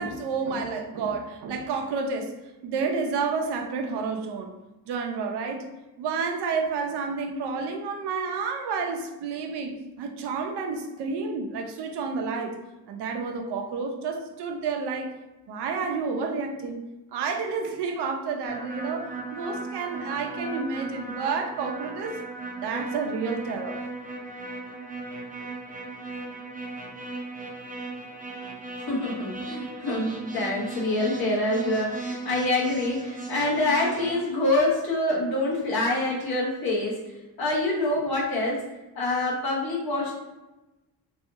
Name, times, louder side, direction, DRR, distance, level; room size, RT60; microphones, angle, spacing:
voice 1, 0.0-2.3 2.6-4.5 4.9-5.7 6.0-12.6 12.9-15.1 15.5-16.8 17.1-22.2 22.6-23.8, right 4 dB, 75° right, 3 dB, 0.6 m, -30 dB
sound 1, 18.5-34.1, right 3 dB, 20° right, 0.5 m, -37 dB
voice 2, 28.9-37.0 37.4-38.6 38.9-40.1, left 2 dB, 60° left, -4 dB, 1.2 m, -26 dB
3.1 x 2.7 x 2.8 m, 1.1 s
cardioid pair, 105°, 41 cm